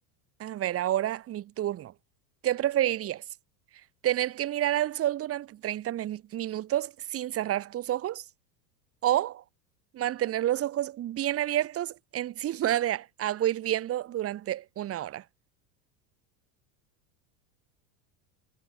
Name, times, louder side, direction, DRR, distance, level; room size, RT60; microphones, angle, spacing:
voice 1, 0.4-1.9 2.4-3.2 4.0-8.2 9.0-9.4 9.9-15.2, right 13 dB, 30° right, 0.8 m, -29 dB
supercardioid pair, 105°, 50 cm